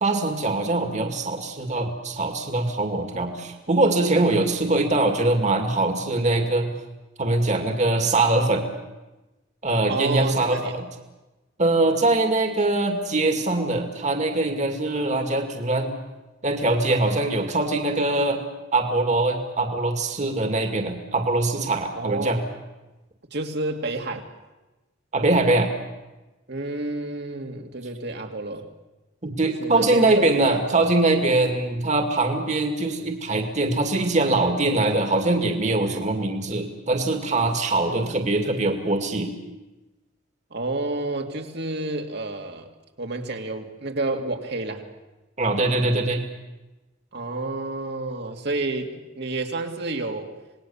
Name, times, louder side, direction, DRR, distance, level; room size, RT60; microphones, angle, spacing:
voice 1, 0.0-6.7 7.2-8.7 9.6-10.9 11.6-15.9 16.4-18.4 18.7-22.4 25.1-25.7 29.2-39.3 45.4-46.2, right 2 dB, 40° right, 5 dB, 2.4 m, -22 dB
voice 2, 9.9-10.8 21.9-22.4 23.3-24.3 26.5-28.7 29.6-30.9 31.3-31.4 35.8-36.1 37.8-38.1 40.5-42.7 43.0-44.9 47.1-50.3, right 2 dB, 60° right, 4 dB, 2.5 m, -30 dB
27.5 x 20.0 x 7.2 m, 1.1 s
head